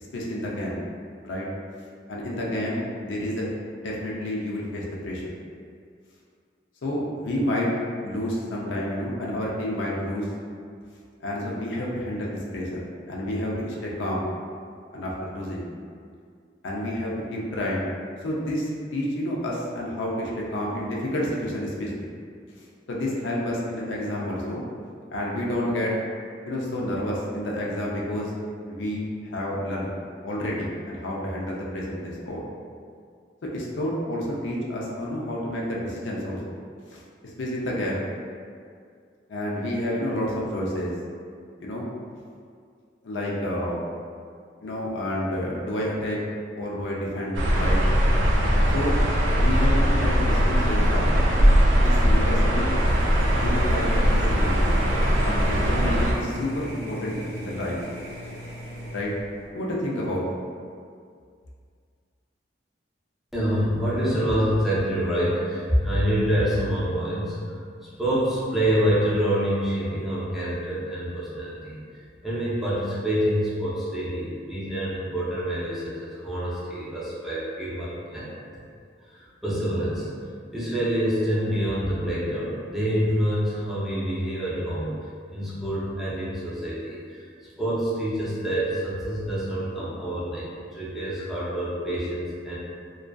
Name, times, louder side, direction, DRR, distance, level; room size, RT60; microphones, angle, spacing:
voice 1, 0.1-0.8 1.2-1.5 2.1-5.3 6.8-7.7 8.0-10.3 11.2-14.3 14.9-15.7 16.6-17.9 18.2-22.1 22.9-24.6 25.1-25.9 26.4-28.3 28.7-29.9 30.2-32.4 33.4-36.5 36.9-37.0 37.4-38.0 39.3-40.9 41.6-41.9 43.0-43.8 44.6-46.2 46.6-47.8 48.7-49.0 49.3-51.1 51.7-52.7 53.3-54.7 55.2-57.8 58.9-59.1 59.5-60.2, left 1 dB, 85° left, -4 dB, 0.4 m, -29 dB
sound 1, 47.3-56.1, equal, 85° right, 0.4 m, -20 dB
sound 2, 52.7-59.5, equal, 35° left, 0.7 m, -38 dB
voice 2, 63.3-71.8 72.2-78.3 78.5-78.6 79.1-80.1 80.5-85.0 85.3-87.3 87.6-92.6, equal, ahead, -9 dB, 0.4 m, -26 dB
2.4 x 2.3 x 2.2 m, 2.2 s
head